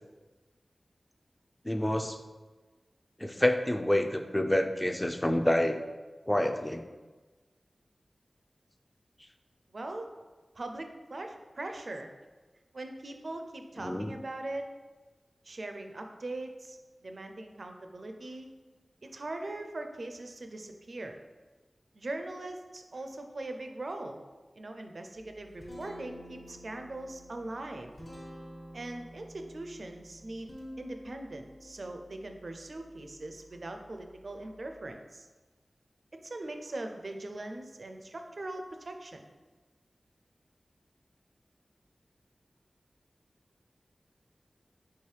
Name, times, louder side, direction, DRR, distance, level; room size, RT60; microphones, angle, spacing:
voice 1, 1.6-2.2 3.2-5.8 6.3-6.8 13.8-14.1, left 1 dB, 15° left, 7 dB, 0.3 m, -28 dB
voice 2, 9.7-10.1 10.6-12.1 12.7-14.7 15.4-18.5 19.0-21.2 21.9-24.2 24.6-27.9 28.7-35.3 36.2-39.2, right 2 dB, 65° right, 5 dB, 0.4 m, -41 dB
Guitar, 25.2-34.9, equal, 55° left, 1.2 m, -50 dB
4.6 x 3.0 x 3.2 m, 1.3 s
wide cardioid pair, 70°, 0 cm